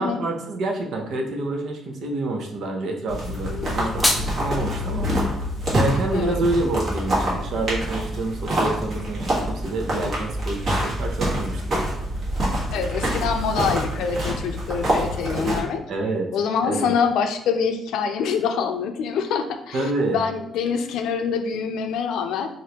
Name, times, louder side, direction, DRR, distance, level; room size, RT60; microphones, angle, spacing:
voice 1, 0.0-5.1 5.7-11.8 15.9-16.3 16.6-16.9 19.7-20.2, right 2 dB, 60° right, 3 dB, 0.8 m, -27 dB
sound 1, 3.1-15.6, equal, 45° right, 1.6 m, -26 dB
voice 2, 3.5-3.9 6.1-6.5 12.7-15.8 16.3-22.5, left 6 dB, 80° left, 6 dB, 0.5 m, -25 dB
sound 2, 3.6-4.6, left 1 dB, 10° left, 0.6 m, -25 dB
4.9 x 2.6 x 2.9 m, 0.76 s
cardioid pair, 120°, 0 cm